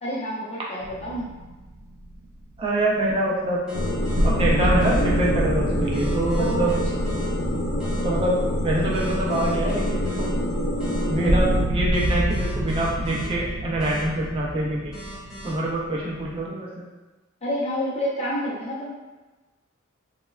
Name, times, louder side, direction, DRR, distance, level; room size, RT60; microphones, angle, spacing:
voice 1, 0.0-1.3 6.3-6.8 17.4-18.9, equal, 30° left, -7 dB, 0.7 m, -28 dB
sound 1, 0.8-2.2 2.5-2.6 3.6-3.7 4.1-9.5 9.8-9.9 10.4-10.5 11.3-16.4, right 1 dB, 90° right, 0.5 m, -27 dB
voice 2, 2.6-3.8 4.2-6.8 8.0-10.3 11.1-15.0 15.4-16.7, right 1 dB, 25° right, -4 dB, 0.3 m, -25 dB
sound 2, 3.7-11.6, equal, 75° left, 0.4 m, -26 dB
sound 3, 3.7-4.3 4.8-5.0 5.9-7.3 7.8-8.0 8.9-10.3 10.8-11.0 11.9-13.3 13.8-14.0 14.9-15.5, left 1 dB, 5° right, 0.8 m, -39 dB
3.0 x 2.1 x 2.3 m, 1.2 s
head